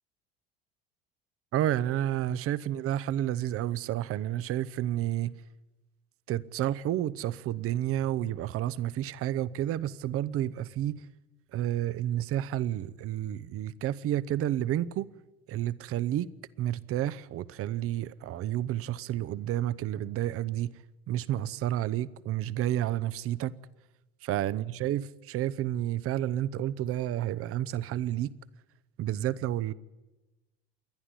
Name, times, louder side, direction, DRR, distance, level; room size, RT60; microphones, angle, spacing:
voice 1, 1.5-5.4 6.3-11.0 11.5-15.1 15.5-16.3 16.6-20.7 21.1-23.6 24.2-28.3 29.0-29.7, right 12 dB, 50° right, 0.9 m, -30 dB
28.0 x 11.0 x 9.9 m
hypercardioid pair, 75°, 29 cm